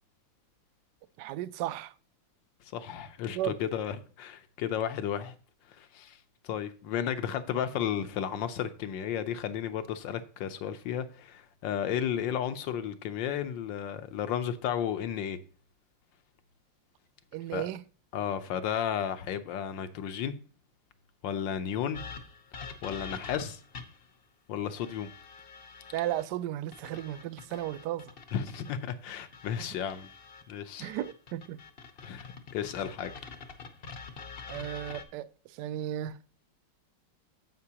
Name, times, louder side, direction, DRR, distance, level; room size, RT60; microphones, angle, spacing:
voice 1, 1.2-1.9 3.3-3.6 17.3-17.8 25.9-28.1 30.8-31.6 34.5-36.2, right 13 dB, 75° right, 1.0 m, -34 dB
voice 2, 2.7-5.3 5.8-6.2 6.4-15.4 17.5-17.7 18.1-20.3 21.2-22.0 22.8-23.6 24.5-25.1 28.3-30.1 30.5-30.9 32.0-33.1, left 9 dB, 75° left, 1.4 m, -33 dB
sound 1, 21.9-24.1 24.8-26.2 26.7-30.4 30.8-35.0, left 5 dB, 45° left, 0.7 m, -46 dB
9.6 x 7.7 x 2.9 m
omnidirectional pair, 2.1 m